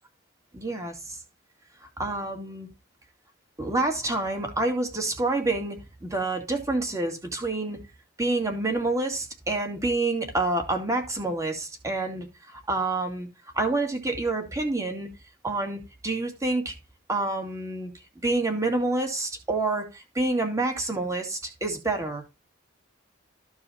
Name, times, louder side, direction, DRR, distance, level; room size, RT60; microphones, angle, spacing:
voice 1, 0.5-1.2 2.0-2.7 3.6-7.8 8.2-12.3 12.5-13.3 13.5-15.1 15.4-16.7 17.1-17.9 18.2-22.2, right 2 dB, 15° right, 2.5 m, -28 dB
14.0 x 4.8 x 4.2 m
head